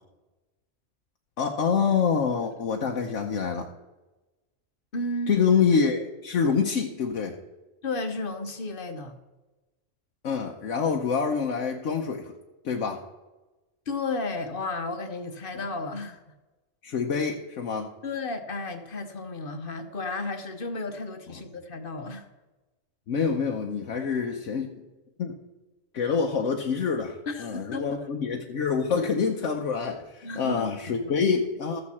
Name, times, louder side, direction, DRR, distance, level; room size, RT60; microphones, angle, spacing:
voice 1, 1.4-3.7 5.3-7.3 10.2-12.3 12.6-13.0 16.8-17.9 23.1-24.7 25.2-25.4 25.9-31.8, left 6 dB, 80° left, 1 dB, 1.2 m, -26 dB
voice 2, 4.9-5.4 7.8-9.1 13.9-16.2 18.0-22.3 27.3-28.1 30.2-31.1, left 2 dB, 50° left, 6 dB, 1.1 m, -33 dB
13.5 x 8.3 x 4.3 m, 1.1 s
omnidirectional pair, 1.3 m